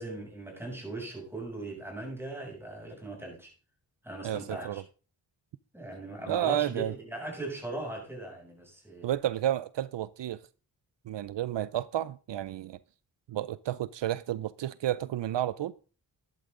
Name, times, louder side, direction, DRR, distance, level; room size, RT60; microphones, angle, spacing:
voice 1, 0.0-3.5 4.0-4.8 5.7-9.1, right 2 dB, 5° right, 7.1 m, -39 dB
voice 2, 4.2-4.8 6.3-6.9 9.0-10.4 11.1-12.8 13.3-15.7, right 12 dB, 80° right, 0.6 m, -31 dB
12.0 x 11.5 x 3.7 m
cardioid pair, 65°, 43 cm